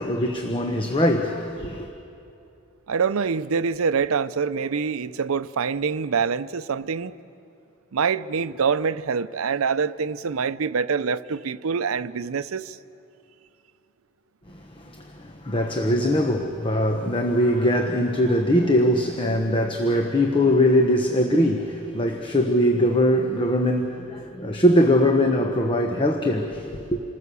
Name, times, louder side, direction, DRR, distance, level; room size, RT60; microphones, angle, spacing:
voice 1, 0.0-1.9 14.5-27.0, left 1 dB, 25° left, 1.1 m, -22 dB
voice 2, 2.9-7.1 7.9-12.8, right 5 dB, 80° right, 0.6 m, -25 dB
28.0 x 20.0 x 6.9 m
head